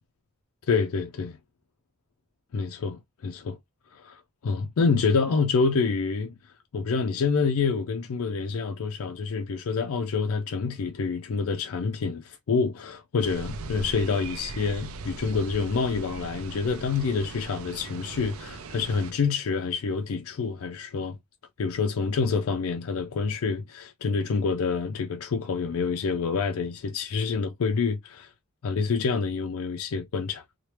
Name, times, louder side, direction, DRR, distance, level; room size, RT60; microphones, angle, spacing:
voice 1, 0.7-1.4 2.5-3.6 3.9-21.2 21.6-28.3 28.6-30.4, left 5 dB, 80° left, 0.4 m, -27 dB
sound 1, 13.2-19.1, right 3 dB, 80° right, 0.4 m, -39 dB
3.2 x 2.1 x 2.9 m
head